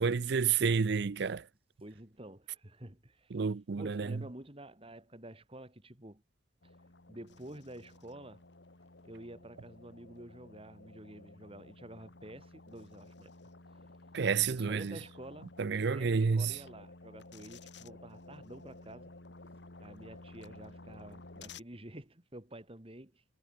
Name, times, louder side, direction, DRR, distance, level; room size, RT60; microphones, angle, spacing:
voice 1, 0.0-1.4 3.3-4.2 14.1-15.0 15.6-16.5, right 5 dB, 60° right, 0.5 m, -30 dB
voice 2, 1.8-3.4 3.8-6.2 6.6-6.7 7.1-8.4 9.0-13.3 14.5-15.5 15.8-19.1 19.8-23.2, right 1 dB, 30° right, 2.6 m, -49 dB
sound 1, 6.6-21.6, left 2 dB, 65° left, 2.0 m, -53 dB
head